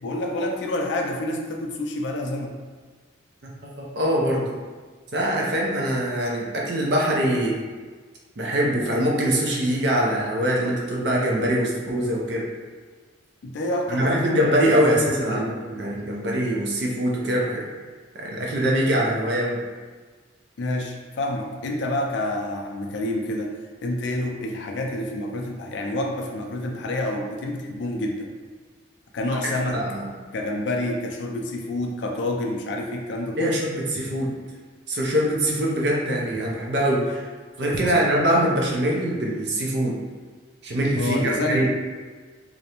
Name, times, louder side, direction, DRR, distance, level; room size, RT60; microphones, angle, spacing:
voice 1, 0.0-2.5 13.4-15.5 20.6-23.5 23.8-28.3 29.1-29.8 30.3-33.6 37.8-38.1 41.0-41.7, left 1 dB, 65° left, 1 dB, 0.3 m, -28 dB
voice 2, 3.6-4.5 5.1-7.6 8.4-12.5 13.9-17.6 18.1-19.6 29.7-30.1 33.4-34.3 34.9-37.2 37.6-40.0 40.6-41.7, right 1 dB, 55° right, -3 dB, 0.5 m, -23 dB
2.5 x 2.1 x 2.8 m, 1.4 s
head